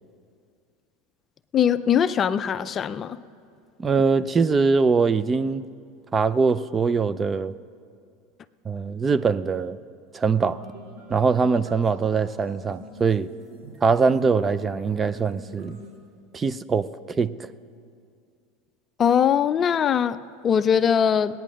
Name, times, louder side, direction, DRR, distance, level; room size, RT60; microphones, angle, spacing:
voice 1, 1.5-3.2 19.0-21.4, left 8 dB, 35° left, 0.4 m, -21 dB
voice 2, 3.8-5.6 6.1-7.5 8.7-9.8 10.1-10.6 11.1-13.3 13.8-15.8 16.3-16.9 17.2-17.3, right 5 dB, 25° right, 0.4 m, -22 dB
sound 1, 10.4-16.0, right 1 dB, 70° right, 4.0 m, -46 dB
19.0 x 9.2 x 6.3 m
hypercardioid pair, 100°, 0 cm